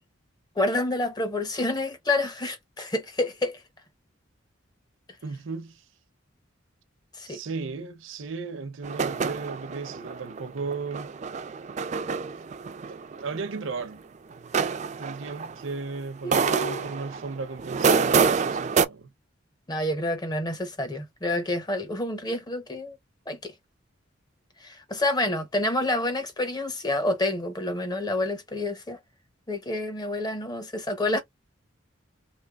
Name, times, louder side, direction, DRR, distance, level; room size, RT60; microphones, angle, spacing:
voice 1, 0.6-3.6 7.2-7.4 16.2-17.0 19.7-23.0 23.3-23.5 24.6-29.0 29.5-31.2, left 2 dB, 20° left, 0.7 m, -28 dB
voice 2, 5.2-5.8 7.3-11.1 12.9-14.1 14.9-19.1, right 4 dB, 80° right, 0.6 m, -35 dB
sound 1, 8.8-13.8 14.3-16.0 16.3-18.9, right 5 dB, 35° right, 0.3 m, -27 dB
3.2 x 3.1 x 2.3 m
head